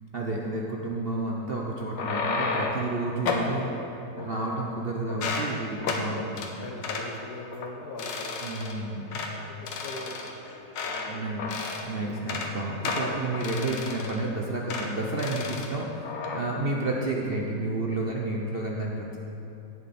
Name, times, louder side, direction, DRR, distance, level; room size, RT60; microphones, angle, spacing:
voice 1, 0.1-3.7 4.2-6.5 8.4-9.2 11.1-11.4 11.8-19.2, right 2 dB, 45° right, -2 dB, 0.8 m, -31 dB
sound 1, 1.8-2.9 3.3-3.5 4.2-4.8 5.1-5.5 5.8-6.1 6.4-6.5 6.8-7.1 7.5-7.7 8.0-8.7 9.1-9.3 9.7-11.1 11.4-11.9 12.2-12.5 12.8-14.3 14.7-14.9 15.2-15.7 16.0-16.4, left 4 dB, 85° left, 1.7 m, -32 dB
voice 2, 3.4-3.9 6.1-6.3 6.6-11.2, left 2 dB, 60° left, 1 dB, 1.6 m, -42 dB
17.5 x 7.0 x 4.3 m, 2.8 s
omnidirectional pair, 1.9 m